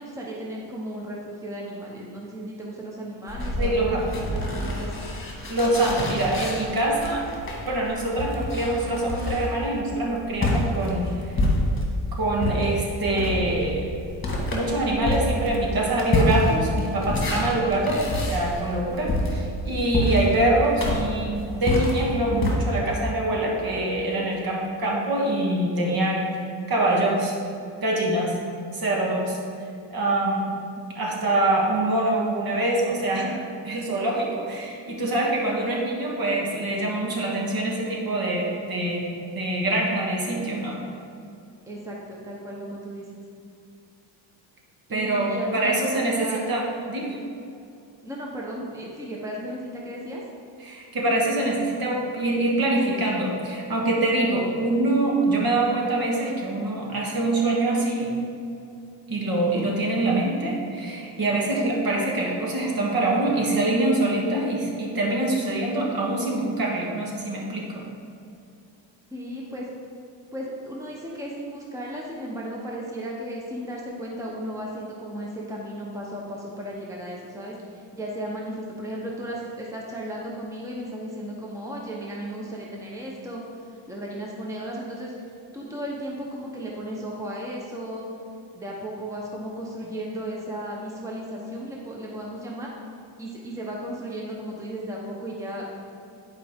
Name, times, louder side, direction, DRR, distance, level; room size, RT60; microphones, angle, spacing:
voice 1, 0.0-3.9 4.3-5.0 41.7-43.2 44.9-46.4 48.0-50.2 69.1-69.7 70.3-83.4 83.9-85.1 85.5-88.1 88.5-92.7 93.2-95.8, right 1 dB, 5° right, -3 dB, 1.0 m, -35 dB
sound 1, 3.3-12.0 12.4-22.5, left 1 dB, 25° left, 1.6 m, -27 dB
voice 2, 3.6-4.1 5.5-7.3 7.7-11.4 12.2-13.9 14.5-27.3 27.8-28.4 28.7-29.4 29.9-30.5 30.9-39.1 39.3-40.8 44.9-47.2 50.6-58.2 59.1-67.8, right 2 dB, 50° right, -2 dB, 1.6 m, -24 dB
10.5 x 4.9 x 3.6 m, 2.5 s
cardioid pair, 120°, 46 cm